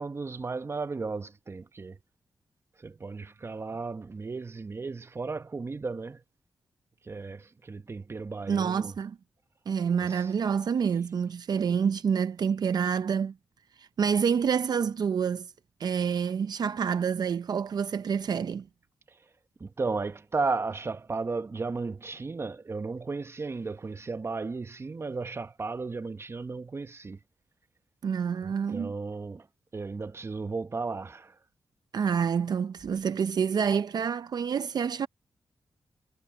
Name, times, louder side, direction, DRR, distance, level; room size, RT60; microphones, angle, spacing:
voice 1, 0.0-2.0 2.8-6.2 7.0-8.9 10.0-10.3 19.6-27.2 28.4-29.5 29.7-31.4, right 4 dB, 35° right, 0.9 m, -34 dB
voice 2, 8.5-9.2 9.7-13.3 13.8-15.5 15.8-18.7 28.0-28.9 31.9-35.1, right 7 dB, 65° right, 0.6 m, -27 dB
cardioid pair, 70°, 8 cm